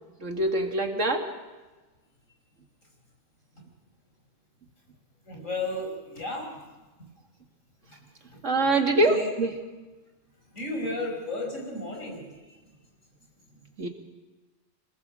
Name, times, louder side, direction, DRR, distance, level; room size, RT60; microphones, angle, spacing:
voice 1, 0.2-1.3 8.4-9.6 13.8-13.9, right 2 dB, 70° right, 4 dB, 2.4 m, -24 dB
voice 2, 5.3-6.5 8.6-8.8 9.1-9.3 10.5-12.2, left 2 dB, 85° left, 0 dB, 6.0 m, -33 dB
26.5 x 20.0 x 6.3 m, 1.2 s
omnidirectional pair, 1.3 m